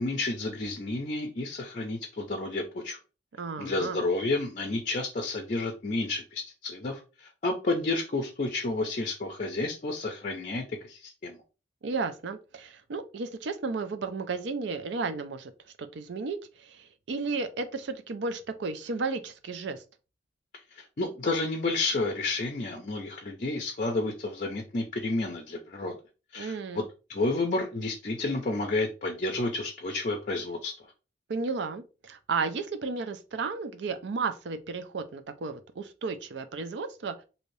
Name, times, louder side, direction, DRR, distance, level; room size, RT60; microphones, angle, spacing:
voice 1, 0.0-3.0 3.6-11.4 20.8-25.9 26.3-26.8 27.1-30.7, left 2 dB, 40° left, 0.5 m, -31 dB
voice 2, 3.4-4.0 11.8-15.5 15.8-19.8 26.4-26.9 31.3-37.1, right 4 dB, 65° right, 0.4 m, -33 dB
3.2 x 2.7 x 2.6 m
head